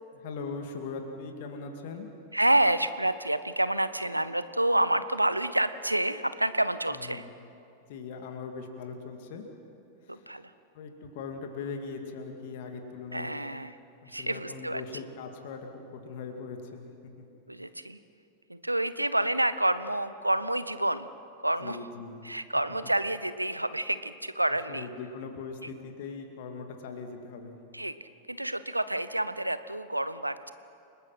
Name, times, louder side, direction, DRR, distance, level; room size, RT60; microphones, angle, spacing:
voice 1, 0.1-2.1 6.9-7.3 7.9-9.4 10.0-10.4 10.7-13.5 14.0-17.3 21.6-22.2 24.5-27.6, left 4 dB, 50° left, 4 dB, 2.4 m, -40 dB
voice 2, 2.3-7.2 10.1-10.5 13.1-13.8 14.1-14.8 17.5-18.0 18.5-21.1 21.4-21.8 22.2-24.9 27.7-30.5, right 1 dB, 85° right, 14 dB, 0.8 m, -28 dB
29.5 x 19.5 x 5.8 m, 2.6 s
figure-of-eight pair, 90°, 0 cm